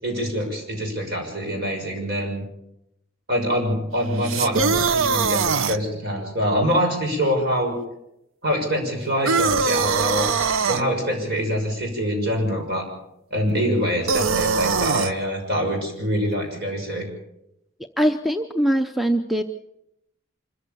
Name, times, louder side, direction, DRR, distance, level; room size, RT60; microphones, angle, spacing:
voice 1, 0.0-2.4 3.3-7.8 8.4-10.3 10.7-12.9 13.3-17.1, equal, 50° right, 2 dB, 6.3 m, -25 dB
sound 1, 4.2-5.8 9.3-10.8 14.1-15.1, right 5 dB, 85° right, 0.7 m, -21 dB
voice 2, 18.0-19.4, equal, ahead, 7 dB, 0.6 m, -21 dB
25.5 x 14.5 x 7.1 m, 0.83 s
head